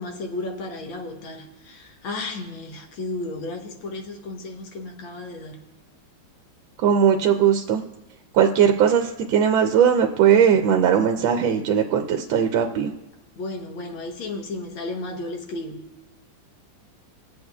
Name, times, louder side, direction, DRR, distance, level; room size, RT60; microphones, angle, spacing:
voice 1, 0.0-5.6 13.4-15.8, left 2 dB, 75° left, 3 dB, 1.8 m, -33 dB
voice 2, 6.8-7.8 8.3-12.9, right 8 dB, 75° right, 5 dB, 1.3 m, -19 dB
22.5 x 8.0 x 2.3 m, 0.96 s
omnidirectional pair, 2.3 m